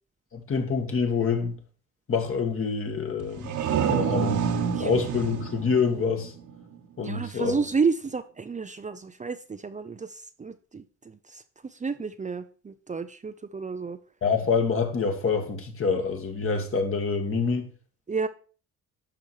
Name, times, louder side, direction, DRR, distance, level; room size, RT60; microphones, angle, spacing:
voice 1, 0.3-1.6 2.1-3.5 3.8-4.4 4.8-6.3 7.0-7.6 14.2-17.7, left 5 dB, 45° left, 2.4 m, -26 dB
sound 1, 3.2-6.8, right 7 dB, 75° right, 1.6 m, -28 dB
voice 2, 7.0-14.0 18.1-18.3, right 5 dB, 25° right, 0.7 m, -31 dB
12.0 x 5.9 x 5.0 m
cardioid pair, 90°, 30 cm